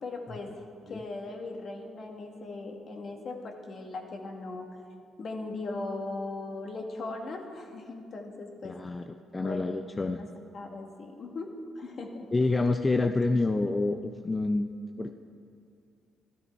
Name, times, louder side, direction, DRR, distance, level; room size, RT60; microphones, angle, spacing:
voice 1, 0.0-4.7 5.2-8.8 9.4-9.8 10.5-12.4, left 2 dB, 50° left, 2 dB, 1.7 m, -39 dB
voice 2, 8.6-10.2 12.3-14.7 15.0-15.1, left 3 dB, 25° left, 7 dB, 0.5 m, -28 dB
12.5 x 12.5 x 4.6 m, 2.3 s
cardioid pair, 90°, 0 cm